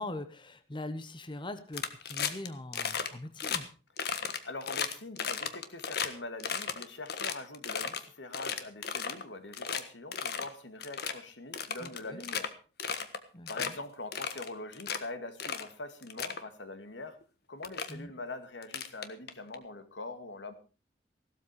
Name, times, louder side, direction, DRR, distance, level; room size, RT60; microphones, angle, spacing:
voice 1, 0.0-3.7 11.8-12.2 13.3-13.5 17.9-18.1, left 2 dB, 25° left, 10 dB, 1.1 m, -41 dB
sound 1, 1.7-2.5 2.7-3.1 3.4-3.6 4.0-6.1 6.4-8.0 8.3-9.2 9.5-9.8 10.1-10.5 10.8-11.1 11.5-12.5 12.8-13.2 13.5-13.7 14.1-15.0 15.4-15.7 16.0-16.4 17.2-17.3 17.6-17.9 18.6-19.5, left 7 dB, 60° left, 1.5 m, -34 dB
voice 2, 4.4-12.6 13.5-17.2 17.5-20.5, left 2 dB, 90° left, 9 dB, 2.2 m, -43 dB
16.0 x 12.5 x 4.8 m, 0.34 s
head